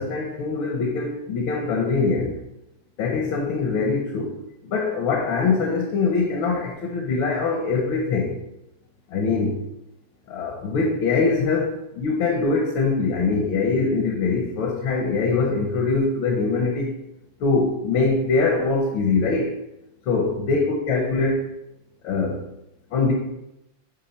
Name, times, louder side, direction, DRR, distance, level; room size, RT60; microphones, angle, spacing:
voice 1, 0.0-2.3 3.0-4.3 4.7-8.3 9.1-9.5 10.3-16.9 17.4-19.5 20.1-21.4 22.0-22.4 22.9-23.1, left 4 dB, 80° left, 1 dB, 1.6 m, -23 dB
8.7 x 3.6 x 4.3 m, 0.86 s
omnidirectional pair, 2.2 m